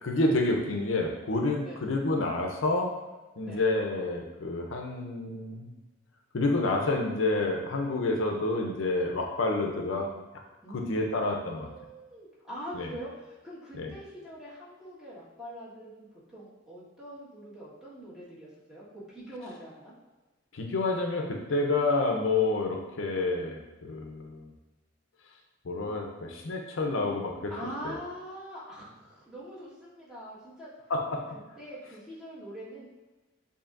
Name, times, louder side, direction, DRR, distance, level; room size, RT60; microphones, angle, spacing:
voice 1, 0.0-2.9 3.4-5.7 6.3-10.1 10.7-11.7 12.7-12.9 13.7-13.9 20.5-24.5 25.6-27.5 27.8-27.9 30.9-31.2, left 2 dB, 85° left, 2 dB, 0.6 m, -29 dB
voice 2, 3.4-3.7 10.6-11.3 11.6-19.9 27.5-30.7 31.6-32.9, equal, 5° right, -10 dB, 1.5 m, -43 dB
7.1 x 2.7 x 2.5 m, 1.2 s
head